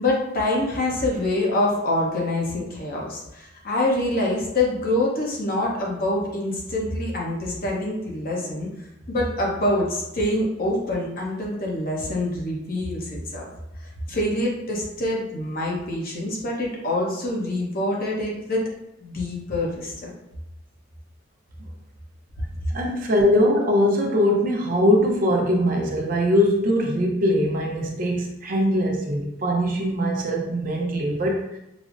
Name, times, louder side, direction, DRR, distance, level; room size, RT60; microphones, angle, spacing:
voice 1, 0.0-8.7 9.1-13.5 13.8-18.6 19.0-20.1, left 1 dB, 50° left, -3 dB, 0.8 m, -25 dB
voice 2, 22.7-31.6, equal, 45° right, 0 dB, 0.6 m, -21 dB
5.0 x 2.0 x 2.5 m, 0.86 s
head